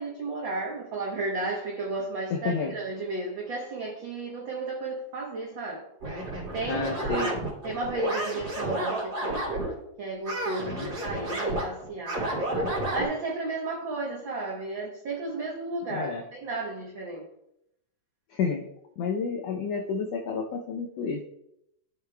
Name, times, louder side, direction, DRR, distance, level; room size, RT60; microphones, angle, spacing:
voice 1, 0.0-5.8 6.5-7.4 7.6-9.4 10.0-17.3, right 3 dB, 65° right, -1 dB, 1.2 m, -33 dB
voice 2, 2.3-2.7 6.7-7.3 10.6-10.9 15.9-16.2 18.3-18.7 19.0-21.2, left 5 dB, 75° left, 1 dB, 1.5 m, -30 dB
sound 1, 6.0-9.7 10.3-13.1, right 1 dB, 40° right, 3.2 m, -31 dB
13.0 x 6.6 x 2.2 m, 0.80 s
omnidirectional pair, 3.6 m